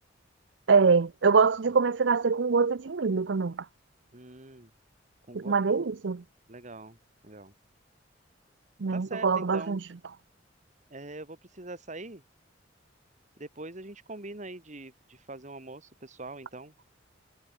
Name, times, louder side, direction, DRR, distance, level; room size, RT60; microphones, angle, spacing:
voice 1, 0.7-3.6 5.3-6.2 8.8-9.8, right 5 dB, 70° right, 0.6 m, -24 dB
voice 2, 4.1-4.7 5.3-5.6 6.5-7.0 7.2-7.5 8.9-9.8 10.9-12.2 13.4-16.7, right 2 dB, 40° right, 2.7 m, -43 dB
head